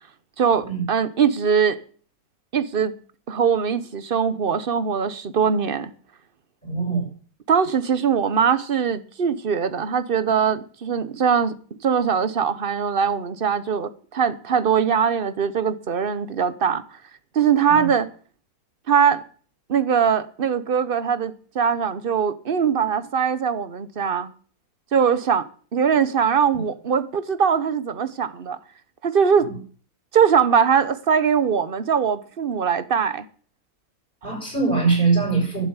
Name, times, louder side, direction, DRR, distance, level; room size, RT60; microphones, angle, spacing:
voice 1, 0.4-1.8 2.5-2.9 3.3-5.9 7.5-11.5 11.8-16.8 17.3-18.1 18.9-19.2 19.7-24.3 24.9-28.6 29.0-29.5 30.1-33.2, right 7 dB, 40° right, 0.9 m, -21 dB
voice 2, 6.6-7.0 17.7-17.9 29.5-29.6 34.2-35.6, right 4 dB, 35° left, 6.1 m, -22 dB
12.0 x 7.4 x 8.2 m
omnidirectional pair, 1.7 m